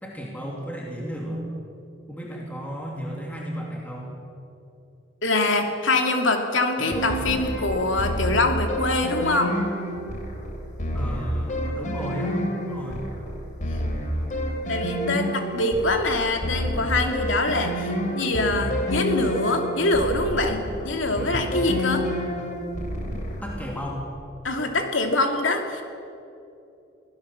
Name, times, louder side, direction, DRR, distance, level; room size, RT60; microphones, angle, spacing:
voice 1, 0.0-1.5 2.1-4.2 10.9-13.2 23.4-24.1, equal, 10° left, -2 dB, 2.8 m, -34 dB
voice 2, 5.2-9.6 14.7-22.1 24.4-25.8, left 2 dB, 75° left, 4 dB, 2.7 m, -24 dB
sound 1, 6.8-23.8, equal, 45° left, 3.5 m, -29 dB
23.5 x 16.5 x 7.2 m, 2.7 s
head